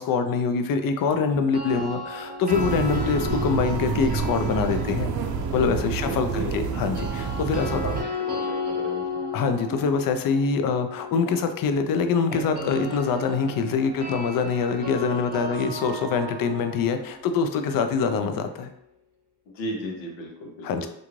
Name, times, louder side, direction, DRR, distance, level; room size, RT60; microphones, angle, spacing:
voice 1, 0.0-5.1 5.5-7.8 9.3-18.7 20.6-20.9, left 5 dB, 50° left, 7 dB, 0.5 m, -24 dB
sound 1, 1.3-5.5 6.7-18.6, left 2 dB, 20° right, 0.8 m, -35 dB
sound 2, 2.5-8.0, right 5 dB, 55° right, 0.5 m, -28 dB
voice 2, 6.0-6.6 7.5-7.9 8.3-8.4 8.6-9.2 15.5-15.7 19.5-20.9, equal, 90° left, 0 dB, 0.8 m, -34 dB
2.5 x 2.3 x 3.1 m, 0.79 s
supercardioid pair, 65°, 43 cm